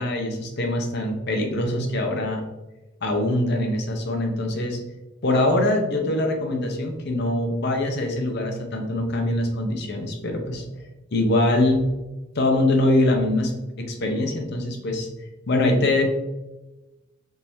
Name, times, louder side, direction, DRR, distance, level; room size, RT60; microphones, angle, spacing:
voice 1, 0.0-2.4 3.0-4.8 5.2-10.7 11.1-11.9 12.3-13.5 13.8-15.1 15.5-16.0, left 1 dB, 55° left, 3 dB, 0.6 m, -23 dB
3.6 x 2.9 x 2.6 m, 1.1 s
head